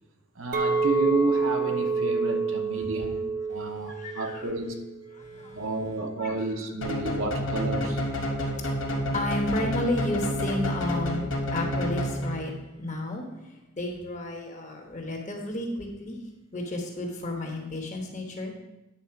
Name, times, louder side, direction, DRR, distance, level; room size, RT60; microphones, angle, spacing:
voice 1, 0.4-4.8 5.5-8.1, right 2 dB, 65° right, 0.9 m, -31 dB
Chink clink, 0.5-4.9 5.2-5.6, right 4 dB, 40° right, 0.6 m, -28 dB
voice 2, 3.5-4.5 5.1-5.7 6.2-6.7 8.3-16.2 16.5-18.5, left 1 dB, 35° left, 1.2 m, -33 dB
sound 1, 6.8-12.6, equal, 55° left, 1.0 m, -29 dB
9.2 x 4.2 x 5.8 m
head